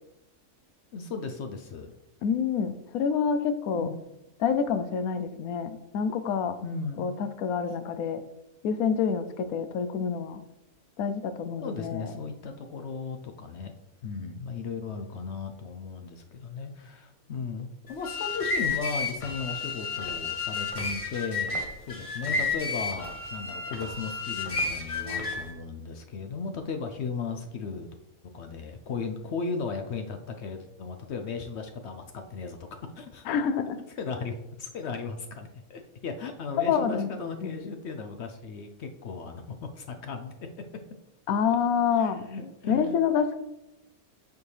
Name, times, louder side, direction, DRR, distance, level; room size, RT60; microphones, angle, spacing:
voice 1, 0.9-1.9 3.7-4.0 6.6-7.1 11.6-13.7 14.0-27.9 28.3-32.6 32.9-33.3 34.0-40.3 41.9-43.0, left 4 dB, 60° left, 6 dB, 0.7 m, -36 dB
voice 2, 2.2-3.9 4.4-6.6 7.0-8.2 8.6-10.4 11.0-12.1 33.3-33.8 36.7-37.5 41.3-42.2 42.7-43.4, left 6 dB, 85° left, 11 dB, 1.1 m, -27 dB
sound 1, 17.9-25.5, left 4 dB, 30° left, 0.8 m, -32 dB
8.1 x 4.5 x 3.3 m, 0.91 s
omnidirectional pair, 1.5 m